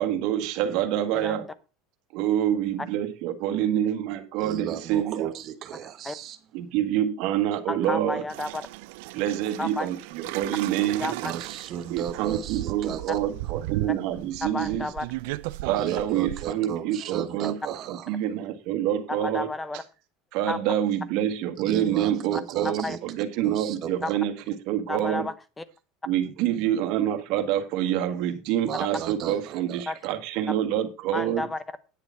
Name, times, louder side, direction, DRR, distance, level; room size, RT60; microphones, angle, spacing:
voice 1, 0.0-1.5 2.1-5.3 6.5-8.2 9.1-11.1 11.9-14.9 15.6-17.6 17.9-19.5 20.3-25.3 26.1-31.5, right 11 dB, 60° right, 1.7 m, -27 dB
voice 2, 4.4-6.4 11.2-13.2 15.7-18.1 21.6-23.0 23.4-24.1 28.6-29.8, right 10 dB, 40° right, 1.0 m, -35 dB
voice 3, 7.7-8.7 9.6-9.9 11.0-11.3 14.4-15.1 19.1-19.8 20.5-20.6 22.8-23.0 24.0-24.2 24.9-25.6 29.9-30.0 30.5-30.6 31.1-31.6, left 2 dB, 10° left, 0.8 m, -31 dB
sound 1, 8.3-16.5, right 19 dB, 75° right, 0.5 m, -36 dB
9.9 x 6.9 x 5.7 m
cardioid pair, 150°, 0 cm